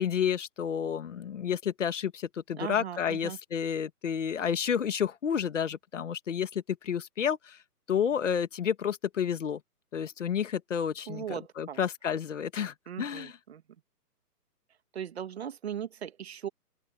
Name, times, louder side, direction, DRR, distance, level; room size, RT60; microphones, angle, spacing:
voice 1, 0.0-7.6 7.9-9.6 9.9-13.3, left 8 dB, 50° left, 1.8 m, -30 dB
voice 2, 2.6-3.4 11.1-11.8 12.9-13.6 14.9-16.5, right 9 dB, 40° right, 1.7 m, -38 dB
open air
hypercardioid pair, 165°, 48 cm